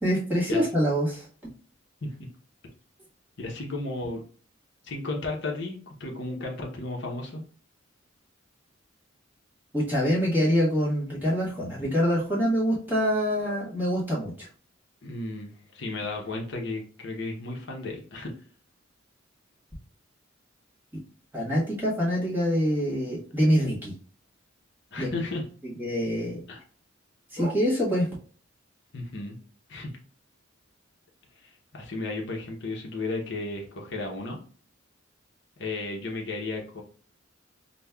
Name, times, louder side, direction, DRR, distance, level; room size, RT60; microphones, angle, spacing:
voice 1, 0.0-1.3 9.7-14.5 16.0-16.2 21.3-23.9 25.0-25.2 25.8-26.4 27.3-28.1, equal, 10° right, -6 dB, 1.2 m, -25 dB
voice 2, 3.4-4.2 4.8-7.4 15.0-18.3 24.9-25.5 26.5-26.6 28.9-29.4 29.7-29.9 31.4-34.4 35.6-36.8, left 2 dB, 55° left, 0 dB, 0.7 m, -34 dB
5.1 x 2.1 x 2.2 m, 0.42 s
head